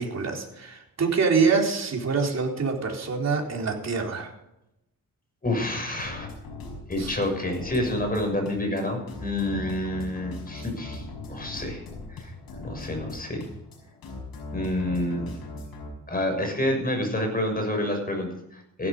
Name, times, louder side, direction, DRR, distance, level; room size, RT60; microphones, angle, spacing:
voice 1, 0.0-4.3 7.0-7.1 10.5-10.6, right 5 dB, 45° right, 0 dB, 3.9 m, -25 dB
voice 2, 5.4-6.3 6.9-11.8 12.1-12.3 12.6-13.4 14.5-15.4 16.1-18.9, left 1 dB, 25° left, 4 dB, 6.3 m, -28 dB
sound 1, 6.0-15.9, left 2 dB, 85° left, 5.8 m, -39 dB
16.0 x 12.0 x 5.2 m, 0.84 s
cardioid pair, 85°, 35 cm